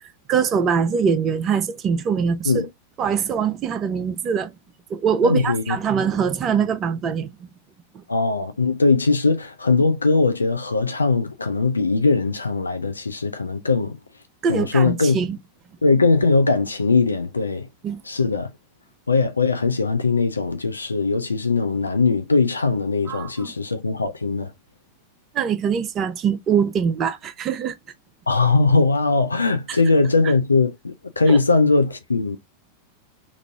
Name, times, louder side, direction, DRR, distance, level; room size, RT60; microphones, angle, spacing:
voice 1, 0.3-2.5 3.0-4.5 4.9-7.5 7.9-8.0 14.4-15.4 17.8-18.0 23.1-23.5 25.3-27.8 29.7-29.8 31.3-31.4, right 6 dB, 30° right, 0.5 m, -23 dB
voice 2, 5.2-5.8 8.1-14.0 14.5-15.2 15.8-17.7 18.0-18.5 19.1-24.5 28.3-32.4, left 3 dB, 80° left, 0.4 m, -20 dB
3.0 x 2.5 x 3.4 m
figure-of-eight pair, 90°, 0 cm